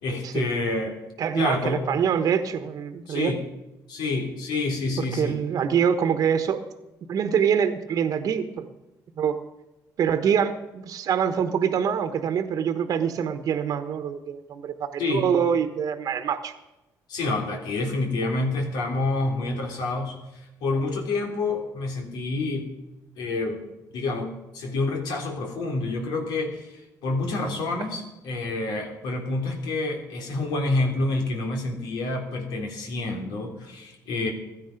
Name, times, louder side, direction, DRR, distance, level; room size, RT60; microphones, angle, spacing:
voice 1, 0.0-1.0 1.4-1.8 3.1-3.4 3.9-5.4 15.0-15.3 17.1-22.7 23.2-23.6 23.9-34.3, left 2 dB, 85° left, 2 dB, 3.6 m, -28 dB
voice 2, 1.2-3.3 5.0-6.6 7.1-8.7 9.2-9.4 10.0-16.5, right 7 dB, 60° right, 9 dB, 1.1 m, -25 dB
16.0 x 12.5 x 5.2 m, 0.98 s
cardioid pair, 115°, 7 cm